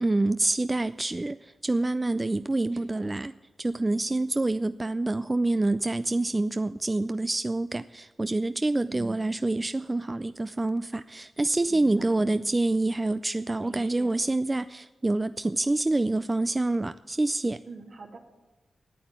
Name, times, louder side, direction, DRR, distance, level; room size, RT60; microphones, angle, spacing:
voice 1, 0.0-3.3 3.6-17.6, right 2 dB, 25° right, 13 dB, 0.3 m, -27 dB
voice 2, 2.7-3.2 8.9-9.3 11.7-12.6 13.6-14.1 17.6-18.2, right 3 dB, 70° right, 2 dB, 2.2 m, -45 dB
9.1 x 8.7 x 8.9 m, 1.2 s
cardioid pair, 60°, 0 cm